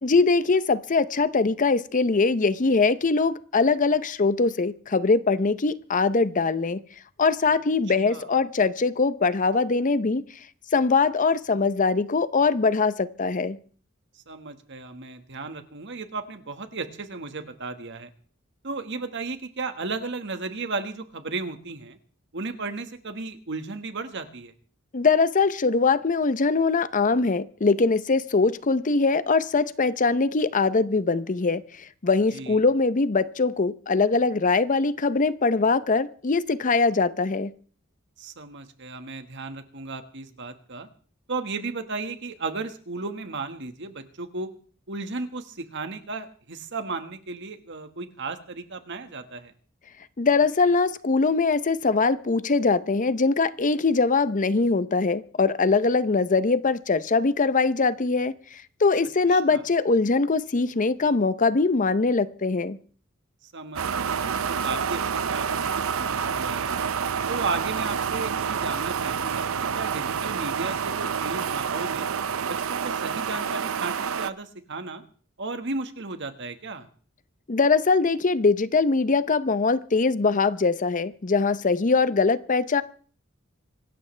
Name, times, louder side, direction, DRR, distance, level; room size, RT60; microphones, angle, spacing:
voice 1, 0.0-6.8 7.2-10.2 10.7-13.6 24.9-37.5 50.2-62.8 77.5-82.8, left 4 dB, 40° left, 15 dB, 0.7 m, -22 dB
voice 2, 8.0-8.3 14.3-18.1 18.6-22.0 22.3-24.5 32.3-32.6 38.2-40.9 41.3-44.5 44.9-49.5 59.3-59.6 63.4-66.8 67.3-72.1 72.4-75.0 75.4-76.9, right 3 dB, 60° right, 8 dB, 1.6 m, -34 dB
sound 1, 63.8-74.3, right 7 dB, 80° right, 0.6 m, -28 dB
26.0 x 13.0 x 3.3 m, 0.44 s
head